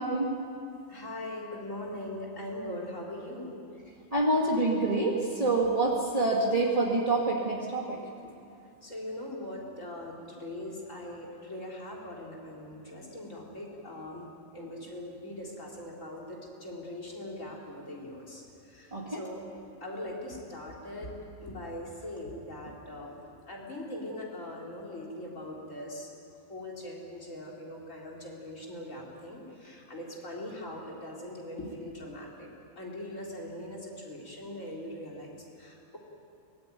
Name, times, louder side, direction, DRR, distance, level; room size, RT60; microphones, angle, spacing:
voice 1, 0.9-3.6 8.8-14.3 14.5-19.4 19.8-21.1 21.4-23.2 23.5-26.1 26.5-32.5 32.8-36.0, left 1 dB, 75° left, -2 dB, 4.3 m, -41 dB
voice 2, 4.1-8.0 18.9-19.2, right 2 dB, 25° right, -3 dB, 2.3 m, -26 dB
22.5 x 20.0 x 9.3 m, 2.6 s
omnidirectional pair, 1.4 m